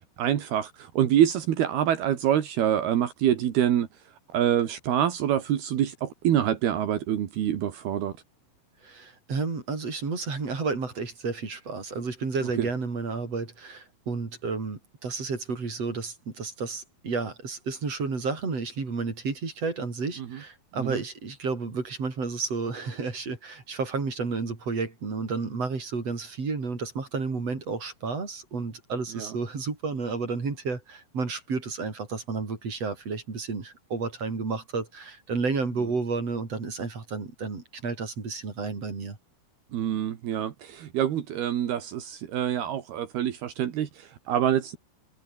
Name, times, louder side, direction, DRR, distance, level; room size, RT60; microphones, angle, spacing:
voice 1, 0.2-3.9 4.3-8.1 12.6-12.7 20.2-20.4 20.8-21.0 29.1-29.3 39.7-44.8, right 10 dB, 75° right, 3.8 m, -26 dB
voice 2, 8.8-39.2, right 4 dB, 40° right, 5.5 m, -31 dB
omnidirectional pair, 4.7 m